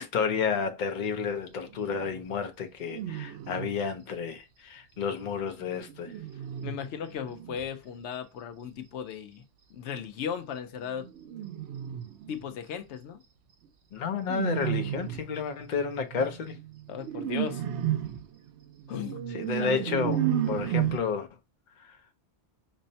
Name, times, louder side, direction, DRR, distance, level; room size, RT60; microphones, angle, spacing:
voice 1, 0.0-6.1 13.9-16.6 19.3-21.3 21.8-22.0, left 6 dB, 50° left, 0.7 m, -31 dB
sound 1, 1.7-2.3 2.8-3.9 5.2-7.7 10.9-12.5 14.2-15.4 16.1-21.0, right 10 dB, 80° right, 0.9 m, -33 dB
voice 2, 6.6-9.4 9.7-11.1 12.3-13.2 16.9-17.6 18.9-19.2 19.6-19.8, left 8 dB, 85° left, 0.9 m, -36 dB
5.3 x 2.1 x 2.6 m
omnidirectional pair, 1.1 m